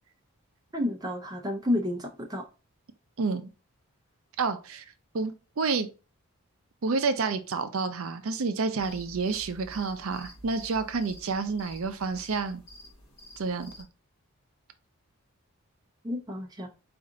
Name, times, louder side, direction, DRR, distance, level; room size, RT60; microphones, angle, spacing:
voice 1, 0.7-2.4 16.0-16.7, left 1 dB, 15° right, 0.6 m, -30 dB
voice 2, 3.2-3.5 4.4-4.8 5.1-5.9 6.8-12.6 13.4-13.7, right 4 dB, 70° right, 0.5 m, -29 dB
sound 1, 8.8-13.8, equal, 25° left, 1.2 m, -49 dB
4.2 x 2.5 x 3.8 m
head